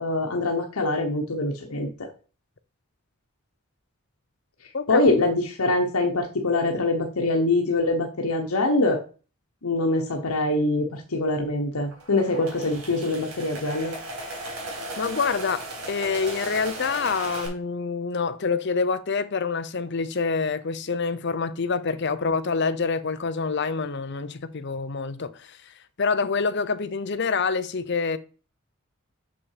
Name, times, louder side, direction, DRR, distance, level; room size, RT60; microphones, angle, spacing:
voice 1, 0.0-2.1 4.9-9.0 9.6-13.9, left 2 dB, 85° left, 1.2 m, -24 dB
sound 1, 11.9-17.5, right 2 dB, 90° right, 4.1 m, -36 dB
voice 2, 15.0-25.6 26.0-28.2, left 5 dB, 50° left, 0.7 m, -26 dB
6.6 x 5.9 x 4.9 m
head